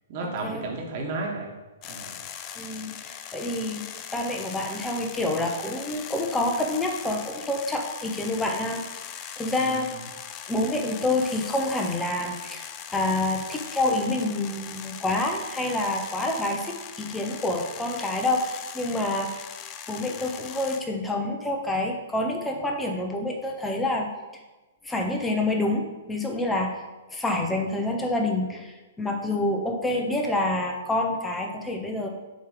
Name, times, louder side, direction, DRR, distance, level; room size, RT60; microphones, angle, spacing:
voice 1, 0.1-1.5 1.8-2.2 9.6-10.0, right 3 dB, 45° right, 0 dB, 1.6 m, -33 dB
sound 1, 1.8-20.8, left 9 dB, 35° left, 0.5 m, -40 dB
voice 2, 2.6-3.8 4.1-8.8 9.4-9.9 10.5-19.4 19.9-24.1 24.8-26.8 27.1-32.1, left 2 dB, 10° left, 1 dB, 0.9 m, -27 dB
6.6 x 3.3 x 4.9 m, 1.1 s
hypercardioid pair, 120°, 0 cm